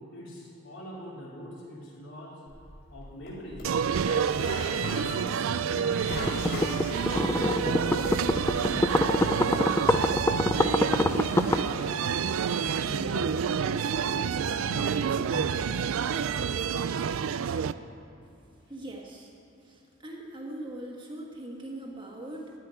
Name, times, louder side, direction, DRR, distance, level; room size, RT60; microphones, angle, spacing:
voice 1, 0.1-2.4 2.9-6.7 7.0-10.7 10.9-11.9 12.4-15.7 16.1-16.3, equal, 60° left, -6 dB, 4.0 m, -43 dB
Drawer open or close, 2.5-7.7 8.0-8.8, left 1 dB, 45° left, 3.7 m, -39 dB
sound 1, 3.6-17.7, right 7 dB, 75° right, 0.4 m, -28 dB
sound 2, 6.1-11.6, left 1 dB, 10° left, 0.3 m, -26 dB
voice 2, 18.7-19.3 19.6-22.5, right 1 dB, 20° right, -2 dB, 1.5 m, -41 dB
15.0 x 5.7 x 9.9 m, 2.7 s
head